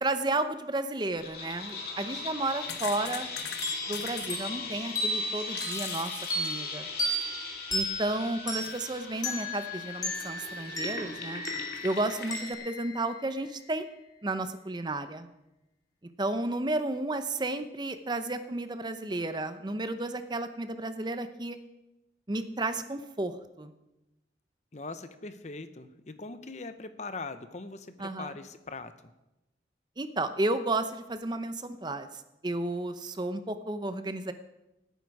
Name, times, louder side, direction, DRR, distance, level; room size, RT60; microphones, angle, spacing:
voice 1, 0.0-3.3 3.9-6.9 7.7-11.4 11.8-13.9 14.2-15.3 16.2-21.6 22.3-23.7 28.0-28.3 30.0-34.3, right 2 dB, 25° right, 10 dB, 0.7 m, -32 dB
sound 1, 1.2-12.7, left 4 dB, 60° left, 2.3 m, -40 dB
sound 2, 1.5-1.7 2.3-4.4 5.3-7.4 7.7-7.8 8.6-8.9 9.1-9.2 10.1-10.8 11.2-11.3 11.7-12.5, left 8 dB, 75° left, 1.2 m, -43 dB
sound 3, 3.6-13.9, equal, 20° left, 2.6 m, -35 dB
voice 2, 24.7-28.9, left 3 dB, 40° left, 11 dB, 0.8 m, -41 dB
17.0 x 9.3 x 4.8 m, 0.94 s
head